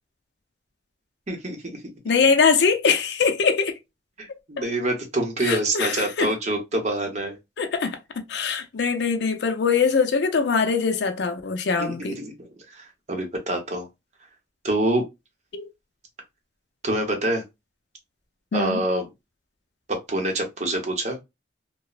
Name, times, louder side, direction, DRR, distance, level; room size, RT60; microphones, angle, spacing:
voice 1, 1.3-1.8 4.2-7.4 11.8-13.9 14.6-15.0 16.8-17.4 18.5-19.1 19.9-21.2, right 1 dB, 40° right, 0.7 m, -26 dB
voice 2, 2.1-3.7 4.3-4.6 5.4-6.3 7.6-8.0 8.3-12.2 15.5-15.7 18.5-18.8, left 5 dB, 70° left, 0.5 m, -22 dB
3.0 x 2.0 x 2.3 m
head